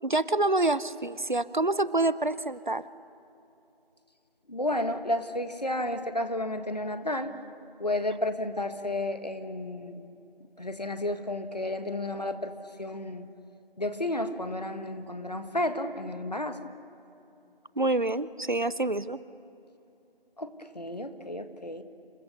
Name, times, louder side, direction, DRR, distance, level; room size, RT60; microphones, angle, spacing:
voice 1, 0.0-2.9 17.8-19.2, right 2 dB, 55° right, 17 dB, 0.8 m, -27 dB
voice 2, 4.5-7.3 7.8-10.1 10.6-13.3 13.8-16.7 20.4-21.8, left 1 dB, 45° left, 9 dB, 1.5 m, -32 dB
29.5 x 28.5 x 6.9 m, 2.8 s
figure-of-eight pair, 175°, 29 cm